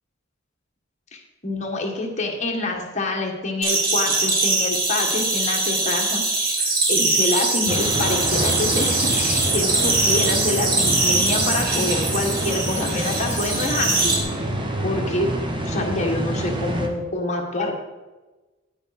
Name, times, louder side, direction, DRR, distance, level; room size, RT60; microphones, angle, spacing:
voice 1, 1.1-6.6 6.9-14.2 14.8-15.3 15.6-17.8, left 2 dB, 35° left, 1 dB, 1.5 m, -26 dB
sound 1, 3.6-14.2, right 2 dB, 50° right, 2.3 m, -22 dB
sound 2, 7.7-16.9, right 1 dB, 25° right, 1.0 m, -27 dB
9.5 x 9.2 x 4.1 m, 1.2 s
head